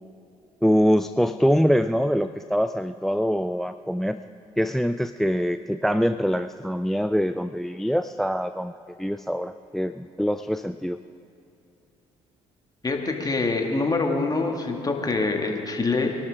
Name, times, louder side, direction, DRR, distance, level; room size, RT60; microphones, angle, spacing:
voice 1, 0.6-4.2 4.6-8.7 9.0-11.0, equal, ahead, 13 dB, 0.4 m, -24 dB
voice 2, 12.8-16.2, left 3 dB, 25° left, 2 dB, 2.2 m, -25 dB
23.5 x 11.5 x 3.7 m, 2.8 s
hypercardioid pair, 55°, 15 cm